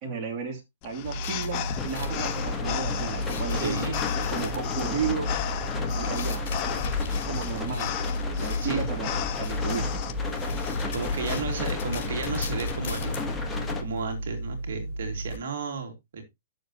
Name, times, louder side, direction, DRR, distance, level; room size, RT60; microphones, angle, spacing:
voice 1, 0.0-3.8 4.3-5.3 5.9-7.9 8.4-9.9, right 6 dB, 35° right, 1 dB, 2.7 m, -34 dB
sound 1, 0.8-10.1, left 11 dB, 35° left, 0.8 m, -35 dB
sound 2, 1.0-15.4, right 1 dB, 50° left, 2.8 m, -34 dB
sound 3, 1.7-13.8, left 6 dB, 10° left, 1.2 m, -32 dB
voice 2, 3.5-4.0 8.6-8.9 10.9-13.2 13.8-16.2, right 5 dB, 75° right, 5 dB, 2.4 m, -33 dB
9.9 x 7.0 x 2.9 m, 0.21 s
hypercardioid pair, 150°, 0 cm